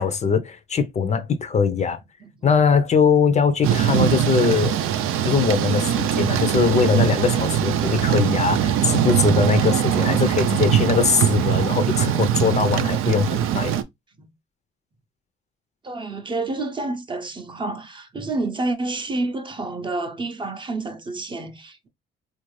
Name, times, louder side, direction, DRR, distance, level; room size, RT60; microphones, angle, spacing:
voice 1, 0.0-2.0 2.4-4.8 5.2-13.7, left 6 dB, 35° left, 0.5 m, -21 dB
Thunder / Rain, 3.6-13.8, right 10 dB, 90° right, 0.6 m, -21 dB
voice 2, 15.8-21.9, right 2 dB, 25° right, 0.6 m, -29 dB
4.3 x 2.5 x 3.1 m
cardioid pair, 140°, 21 cm